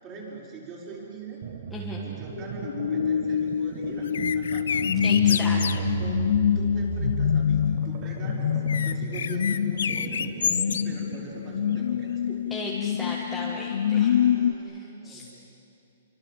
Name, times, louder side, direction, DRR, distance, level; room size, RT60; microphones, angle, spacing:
voice 1, 0.0-1.4 2.0-4.7 5.3-6.2 6.5-10.6 10.8-12.4 13.9-15.3, right 3 dB, 20° right, -3 dB, 5.8 m, -42 dB
sound 1, 1.4-11.9, right 5 dB, 40° right, 1.3 m, -34 dB
voice 2, 1.7-2.1 5.0-5.6 12.5-14.1 14.7-15.3, left 1 dB, 5° left, -4 dB, 1.6 m, -36 dB
sound 2, 2.3-14.5, left 9 dB, 60° left, 0.6 m, -26 dB
sound 3, 4.0-5.8 8.7-10.8, left 7 dB, 80° left, 1.0 m, -29 dB
29.0 x 24.5 x 7.7 m, 2.6 s
hypercardioid pair, 170°, 0 cm